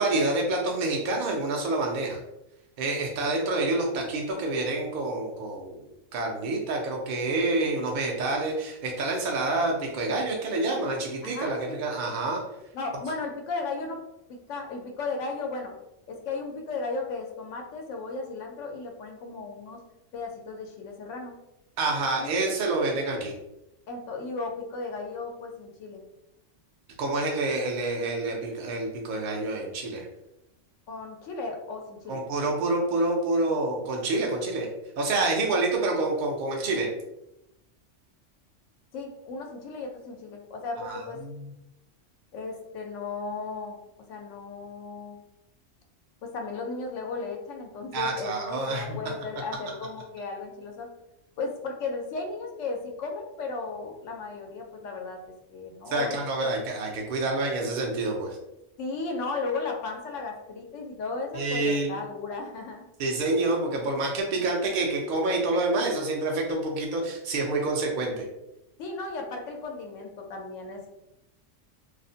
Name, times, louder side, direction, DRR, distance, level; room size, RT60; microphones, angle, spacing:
voice 1, 0.0-2.2 2.8-5.9 6.1-12.4 21.8-23.3 27.0-30.1 32.1-34.7 35.0-36.9 40.8-41.5 47.9-49.0 55.9-58.4 61.3-62.0 63.0-68.3, right 2 dB, 60° right, 0 dB, 0.5 m, -27 dB
voice 2, 11.2-11.8 12.7-14.0 14.3-15.7 16.1-19.8 20.1-21.3 22.2-22.6 23.9-26.0 30.9-32.2 38.9-41.2 42.3-43.8 44.1-45.2 46.2-50.9 51.4-55.2 55.5-56.2 58.8-62.9 68.8-70.9, left 3 dB, 85° left, 2 dB, 0.9 m, -35 dB
2.5 x 2.0 x 2.6 m, 0.88 s
omnidirectional pair, 1.2 m